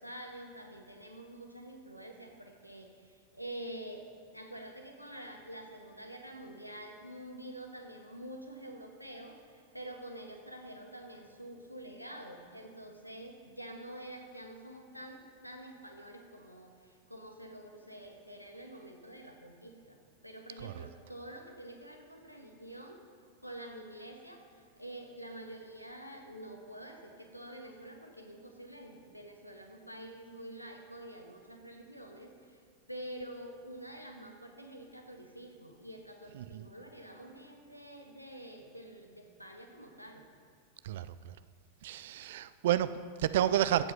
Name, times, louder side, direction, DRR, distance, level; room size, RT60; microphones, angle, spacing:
voice 1, 0.0-4.1 4.3-23.0 23.4-32.6 32.9-40.2, right 1 dB, 90° left, 3 dB, 1.5 m, -47 dB
voice 2, 20.6-20.9 36.3-36.7 40.8-41.4 41.8-43.9, right 11 dB, 55° right, 14 dB, 0.5 m, -31 dB
15.0 x 7.9 x 5.8 m, 2.1 s
figure-of-eight pair, 90°, 0 cm